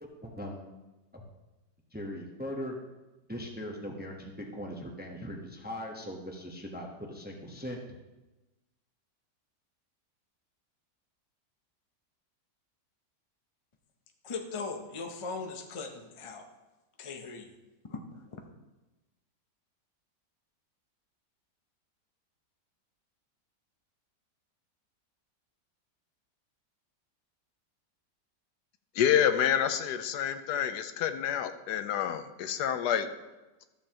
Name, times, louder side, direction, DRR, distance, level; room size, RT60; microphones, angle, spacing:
voice 1, 0.0-0.7 1.1-1.2 1.9-2.8 3.3-7.8, equal, 10° right, 1 dB, 0.7 m, -40 dB
voice 2, 14.2-16.5 17.0-17.5 17.8-18.5, left 4 dB, 50° left, 4 dB, 0.3 m, -39 dB
voice 3, 29.0-33.1, left 9 dB, 80° left, 10 dB, 1.2 m, -28 dB
13.5 x 7.1 x 2.9 m, 1.1 s
omnidirectional pair, 1.8 m